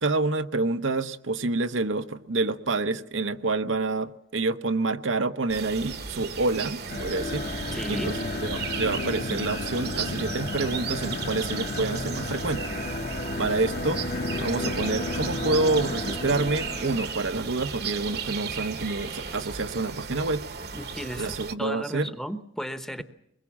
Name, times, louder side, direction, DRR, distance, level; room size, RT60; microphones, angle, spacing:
voice 1, 0.0-7.4 7.9-12.7 13.4-14.0 14.4-20.4 21.2-22.1, right 3 dB, 85° right, 0.9 m, -28 dB
sound 1, 5.5-21.6, right 6 dB, 55° right, 1.0 m, -35 dB
sound 2, 6.8-17.3, left 2 dB, 45° left, 1.0 m, -33 dB
voice 2, 7.7-8.1 20.7-23.0, equal, ahead, 0.8 m, -35 dB
23.0 x 21.5 x 7.3 m
head